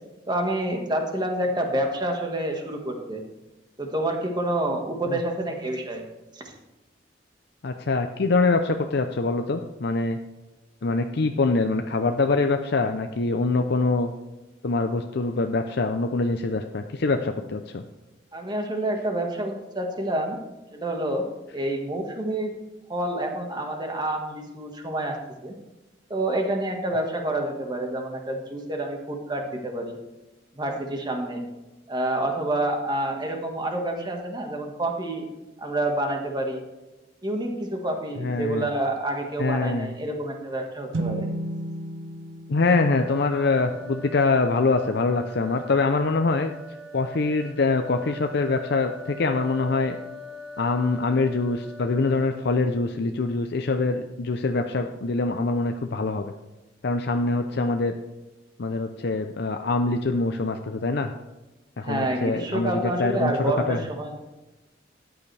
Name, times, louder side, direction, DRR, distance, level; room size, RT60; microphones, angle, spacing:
voice 1, 0.3-3.2 3.8-6.0 6.3-6.4 18.3-20.4 20.7-21.2 21.5-22.5 22.9-25.2 25.4-25.5 26.1-30.0 30.5-31.4 31.9-35.3 35.6-36.6 37.2-41.3 61.8-64.1, right 1 dB, 25° right, 2 dB, 1.6 m, -28 dB
voice 2, 7.6-10.2 10.8-14.1 14.6-17.8 38.2-38.7 39.4-39.9 42.5-46.5 46.9-50.0 50.6-56.3 56.8-57.9 58.6-61.1 61.8-63.8, left 3 dB, 65° left, 6 dB, 0.6 m, -24 dB
sound 1, 40.9-44.5, right 2 dB, 85° right, 1.0 m, -34 dB
sound 2, 42.6-52.5, left 1 dB, 60° right, 2.1 m, -42 dB
13.5 x 9.4 x 3.4 m, 1.1 s
head